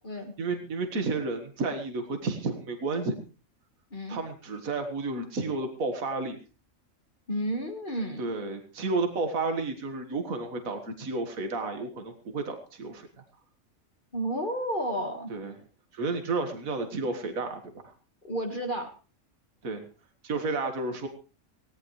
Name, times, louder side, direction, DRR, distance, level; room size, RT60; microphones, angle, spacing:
voice 1, 0.4-3.2 4.1-6.4 8.2-13.1 15.3-15.6 15.9-17.7 19.6-19.9 20.2-21.1, right 3 dB, 75° right, 6 dB, 2.1 m, -31 dB
voice 2, 7.3-8.3 14.1-15.3 18.2-18.9, right 1 dB, 35° left, 3 dB, 1.9 m, -31 dB
19.0 x 17.0 x 3.2 m, 0.34 s
omnidirectional pair, 1.5 m